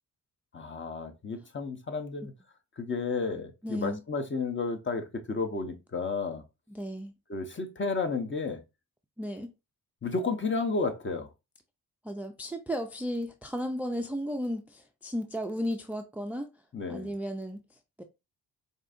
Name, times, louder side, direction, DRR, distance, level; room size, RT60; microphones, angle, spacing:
voice 1, 0.5-2.3 2.8-6.4 7.3-8.6 10.0-11.3 16.7-17.1, left 4 dB, 30° left, 0.9 m, -32 dB
voice 2, 3.6-4.0 6.7-7.1 9.2-9.5 12.0-16.5 16.9-17.6 18.0-18.1, equal, 5° right, 0.4 m, -34 dB
4.8 x 2.8 x 2.5 m
cardioid pair, 75°, 38 cm